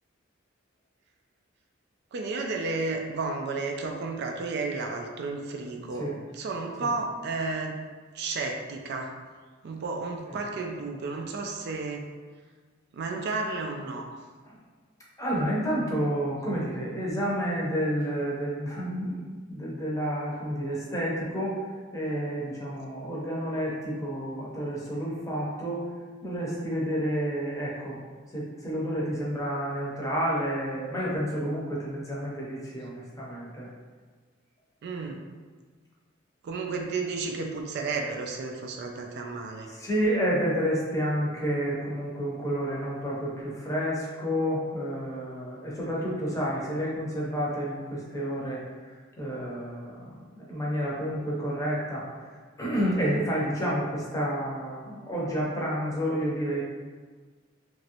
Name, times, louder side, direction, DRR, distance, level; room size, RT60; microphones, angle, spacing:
voice 1, 2.1-6.1 6.3-7.8 8.1-9.1 9.6-12.0 12.9-14.1 34.8-35.2 36.4-39.7, right 3 dB, 55° right, 2 dB, 0.3 m, -32 dB
voice 2, 15.2-21.6 21.9-25.8 26.2-28.0 28.3-33.7 39.7-48.6 49.2-52.0 52.6-56.6, equal, 15° left, -5 dB, 0.7 m, -30 dB
3.0 x 2.6 x 2.8 m, 1.5 s
head